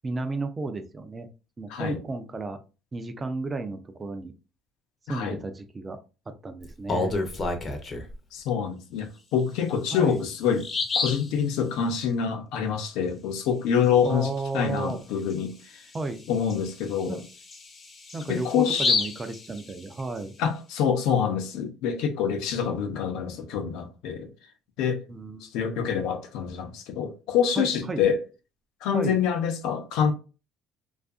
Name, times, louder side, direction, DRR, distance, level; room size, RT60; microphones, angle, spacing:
voice 1, 0.0-1.3 1.6-2.6 2.9-4.3 5.1-6.0 6.3-7.2 9.9-10.2 14.0-15.0 15.9-16.2 17.1-17.2 18.1-20.3 25.1-26.0 27.6-28.0 28.9-29.2, right 3 dB, 20° right, 0.3 m, -33 dB
voice 2, 1.7-2.0 5.1-5.4 8.3-10.7 11.0-15.8 16.3-17.2 18.3-18.9 20.4-24.3 24.8-25.0 25.4-28.2 28.8-30.1, left 7 dB, 85° left, 0.5 m, -26 dB
Bird vocalization bird call bird song, 6.6-8.1 9.6-9.7 10.1-10.2 10.6-11.3 14.8-14.9 15.3-15.4 15.9-20.2, left 3 dB, 30° left, 0.5 m, -30 dB
2.6 x 2.4 x 2.3 m
cardioid pair, 145°, 0 cm